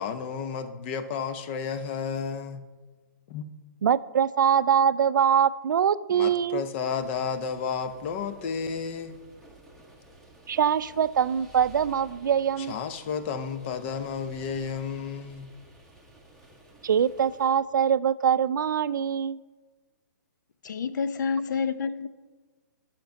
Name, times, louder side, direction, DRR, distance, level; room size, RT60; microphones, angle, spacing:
voice 1, 0.0-2.6 3.3-3.4 6.1-9.2 12.6-15.5, left 6 dB, 35° left, 0.7 m, -32 dB
voice 2, 3.8-6.6 10.5-12.8 16.8-19.4, right 8 dB, 80° right, 0.4 m, -23 dB
sound 1, 6.9-17.5, right 1 dB, 5° left, 1.3 m, -52 dB
voice 3, 20.6-22.1, left 5 dB, 70° left, 0.6 m, -28 dB
10.5 x 5.9 x 5.2 m
hypercardioid pair, 145°, 10 cm